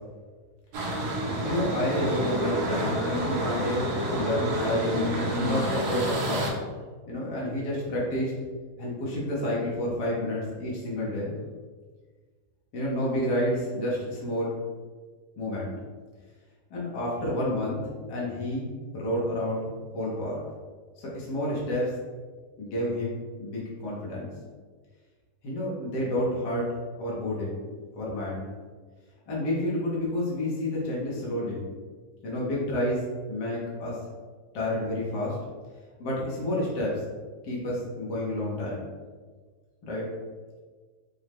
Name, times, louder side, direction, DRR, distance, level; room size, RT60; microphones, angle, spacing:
sound 1, 0.7-6.5, right 1 dB, 70° right, 1.3 m, -29 dB
voice 1, 1.4-6.5 7.1-8.3 8.8-11.3 12.7-14.6 15.4-15.7 16.7-20.4 21.0-21.9 22.6-24.3 25.4-26.7 27.0-27.5 27.9-28.5 29.3-31.7 32.2-34.0 34.5-35.4 36.0-37.0 37.4-38.8 39.9-40.0, left 1 dB, 85° left, -6 dB, 1.6 m, -30 dB
6.1 x 2.1 x 3.4 m, 1.5 s
omnidirectional pair, 1.8 m